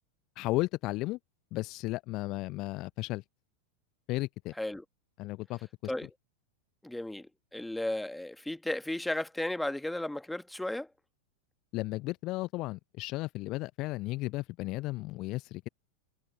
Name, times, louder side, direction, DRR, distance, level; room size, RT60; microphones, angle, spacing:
voice 1, 0.4-1.2 1.5-3.2 4.1-4.5 5.2-5.9 11.7-15.7, left 20 dB, 40° left, 0.7 m, -34 dB
voice 2, 6.8-10.9, left 1 dB, 5° left, 1.8 m, -34 dB
figure-of-eight pair, 90°, 0 cm